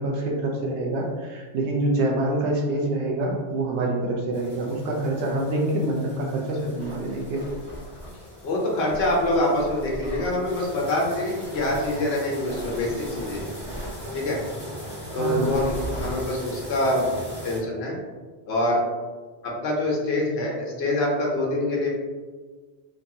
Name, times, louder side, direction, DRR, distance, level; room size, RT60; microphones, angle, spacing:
voice 1, 0.0-7.4 15.1-15.5, right 1 dB, 75° right, -1 dB, 0.9 m, -26 dB
sound 1, 4.3-17.6, equal, 25° left, 1.2 m, -39 dB
Tearing, 6.6-8.4 8.9-10.3 11.4-11.9 12.4-14.0 15.3-16.2, equal, 30° right, 1.2 m, -38 dB
voice 2, 8.4-13.4 14.1-14.4 15.1-17.1 17.4-18.0 18.5-18.8 19.4-21.9, left 1 dB, 70° left, -3 dB, 0.9 m, -25 dB
3.0 x 2.3 x 2.6 m, 1.4 s
omnidirectional pair, 1.2 m